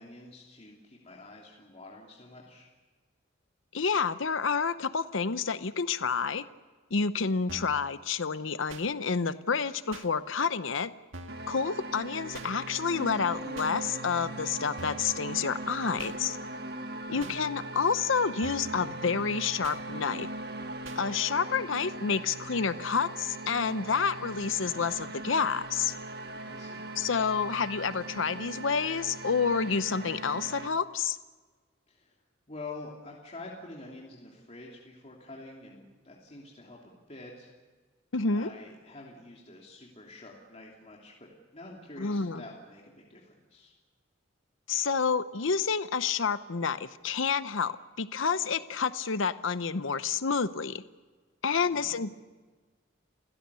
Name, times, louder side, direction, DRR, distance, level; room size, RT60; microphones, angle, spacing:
voice 1, 0.0-2.7 17.0-17.3 26.4-26.8 31.9-32.1 32.5-36.8 37.1-37.5 38.3-43.7 51.6-51.9, left 2 dB, 35° left, -3 dB, 3.0 m, -47 dB
voice 2, 3.7-6.4 6.9-10.9 11.5-16.4 17.1-20.3 20.9-25.9 27.0-31.2 38.1-38.5 42.0-42.4 44.7-50.8 51.4-52.1, left 5 dB, 75° left, 13 dB, 0.8 m, -29 dB
sound 1, 7.5-7.8 8.7-8.9 9.9-10.1 11.1-11.5 12.3-12.5 13.6-13.7 14.8-15.1 16.0-16.2 17.2-17.4 18.4-18.8 19.6-19.8 20.8-21.0, right 2 dB, 80° right, 1.8 m, -44 dB
sound 2, 11.3-30.7, right 2 dB, 55° right, 1.4 m, -40 dB
30.0 x 17.0 x 6.9 m, 1.4 s
head